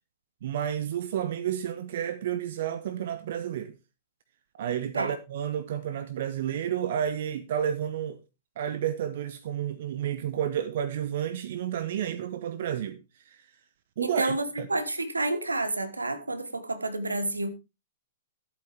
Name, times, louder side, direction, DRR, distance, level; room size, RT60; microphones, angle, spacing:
voice 1, 0.4-3.7 4.5-8.2 8.6-13.4 14.0-14.7, right 9 dB, 55° right, 0.9 m, -31 dB
voice 2, 14.0-17.5, right 2 dB, 85° right, 1.4 m, -29 dB
14.0 x 8.2 x 3.4 m
figure-of-eight pair, 105°, 0 cm